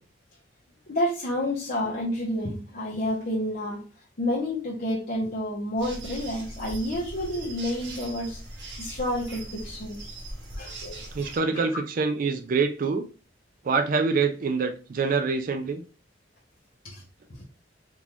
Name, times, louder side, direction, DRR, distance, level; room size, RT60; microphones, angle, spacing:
voice 1, 0.9-3.8 4.2-8.4 8.8-10.0 10.6-11.1 11.5-11.8 16.8-17.0 17.3-17.4, left 1 dB, 55° left, 0.9 m, -29 dB
sound 1, 5.8-11.4, right 1 dB, 70° right, 1.2 m, -40 dB
voice 2, 11.1-13.1 13.6-15.8, right 4 dB, 50° right, 0.4 m, -25 dB
3.6 x 2.5 x 2.9 m
head